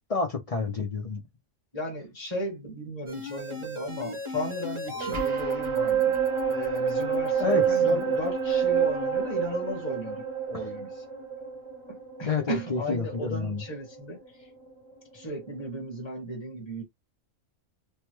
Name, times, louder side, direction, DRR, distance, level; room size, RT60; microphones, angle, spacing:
voice 1, 0.1-1.2 7.4-8.1 10.5-10.7 12.3-13.6, left 4 dB, 45° left, 0.4 m, -29 dB
voice 2, 1.7-6.2 6.5-10.9 11.9-14.2 15.1-16.8, equal, 20° left, 1.3 m, -35 dB
sound 1, 3.1-13.4 13.8-13.9, right 6 dB, 30° right, 0.7 m, -28 dB
3.3 x 2.1 x 3.0 m
omnidirectional pair, 1.4 m